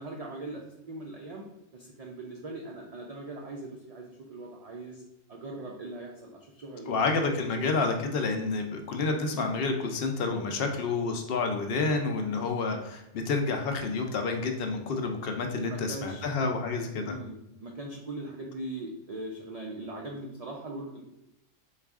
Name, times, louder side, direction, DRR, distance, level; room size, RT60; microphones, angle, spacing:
voice 1, 0.0-1.5 1.7-5.0 5.3-7.0 7.4-7.8 15.6-16.3 17.0-17.3 17.6-21.0, right 2 dB, 75° right, -1 dB, 0.3 m, -40 dB
voice 2, 6.9-17.1, left 4 dB, 60° left, 4 dB, 0.7 m, -29 dB
4.0 x 2.4 x 3.4 m, 0.88 s
omnidirectional pair, 1.3 m